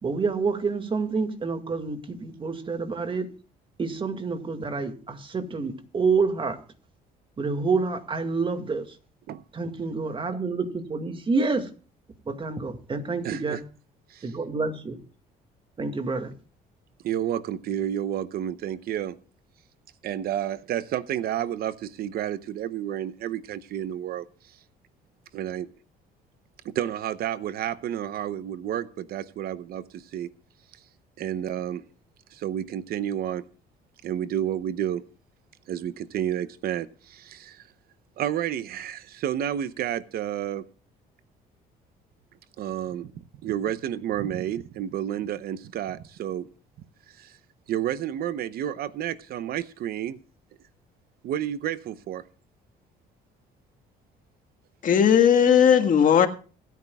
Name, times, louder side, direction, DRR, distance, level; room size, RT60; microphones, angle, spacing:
voice 1, 0.0-3.3 3.8-6.6 7.4-8.9 9.5-11.7 12.3-13.6 14.2-15.0 15.8-16.3, right 4 dB, 30° right, 2.0 m, -28 dB
voice 2, 13.2-13.6 14.1-14.3 17.0-19.2 20.0-24.6 25.3-25.7 26.6-30.3 31.2-31.8 32.3-33.4 34.0-35.1 35.7-37.7 38.2-40.6 42.6-46.5 47.1-47.4 47.7-50.2 51.2-52.2, right 10 dB, 65° right, 0.8 m, -30 dB
voice 3, 54.8-56.3, left 8 dB, 50° left, 1.7 m, -17 dB
26.0 x 9.3 x 2.3 m
cardioid pair, 110°, 17 cm